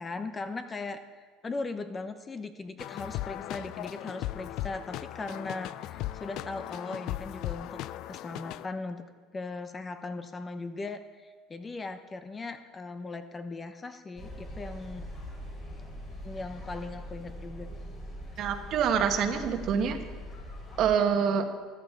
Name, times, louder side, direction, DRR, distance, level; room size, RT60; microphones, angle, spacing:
voice 1, 0.0-7.8 8.1-9.0 9.3-15.1 16.2-17.7, left 3 dB, 25° left, 9 dB, 0.7 m, -38 dB
sound 1, 2.8-8.7, left 14 dB, 65° left, 0.3 m, -37 dB
sound 2, 14.2-20.9, equal, 45° left, 4.1 m, -42 dB
voice 2, 18.4-20.0 20.8-21.5, right 7 dB, 55° right, 6 dB, 1.2 m, -26 dB
14.0 x 10.5 x 3.7 m, 1.5 s
supercardioid pair, 110°, 0 cm